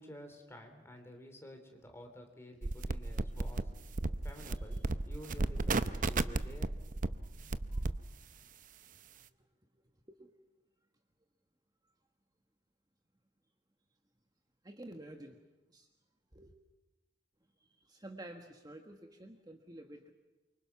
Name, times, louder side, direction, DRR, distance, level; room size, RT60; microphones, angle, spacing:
voice 1, 0.0-3.7 4.2-4.8 5.0-6.7, equal, 15° left, 4 dB, 3.5 m, -51 dB
sound 1, 2.6-8.0, right 2 dB, 45° right, 0.7 m, -34 dB
voice 2, 4.4-4.9 7.0-7.3 7.7-7.9 10.1-10.3 14.6-15.4 15.7-15.9 16.3-16.5 17.6-20.1, right 1 dB, 20° right, 4 dB, 1.4 m, -51 dB
28.0 x 24.5 x 6.0 m, 1.1 s
head